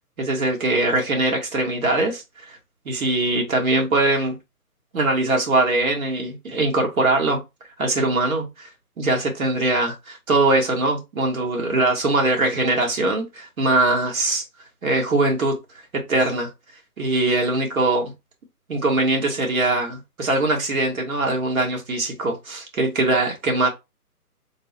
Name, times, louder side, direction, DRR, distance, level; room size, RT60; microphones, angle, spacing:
voice 1, 0.2-2.6 2.8-4.4 4.9-7.4 7.8-8.7 9.0-14.4 14.8-15.6 15.9-16.5 17.0-18.1 18.7-23.7, right 2 dB, 60° right, 1.4 m, -22 dB
3.7 x 2.0 x 3.9 m
figure-of-eight pair, 145°, 46 cm